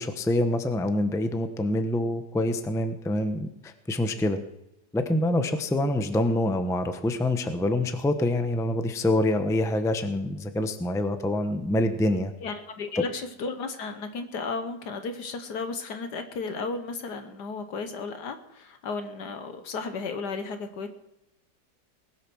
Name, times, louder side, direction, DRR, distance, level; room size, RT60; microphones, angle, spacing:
voice 1, 0.0-4.4 4.9-12.3 13.0-13.1, left 1 dB, 5° left, 8 dB, 0.6 m, -26 dB
voice 2, 12.4-20.9, left 4 dB, 70° left, 8 dB, 1.7 m, -34 dB
20.0 x 8.8 x 6.2 m, 0.89 s
omnidirectional pair, 1.9 m